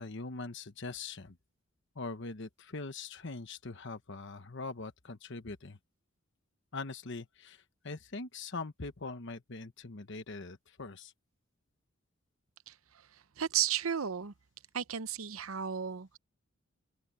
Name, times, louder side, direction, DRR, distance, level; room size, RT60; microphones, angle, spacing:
voice 1, 0.0-1.4 1.9-5.8 6.7-11.1, left 3 dB, 60° left, 1.1 m, -42 dB
voice 2, 12.7-14.3 14.7-16.2, right 9 dB, 85° right, 0.8 m, -34 dB
open air
head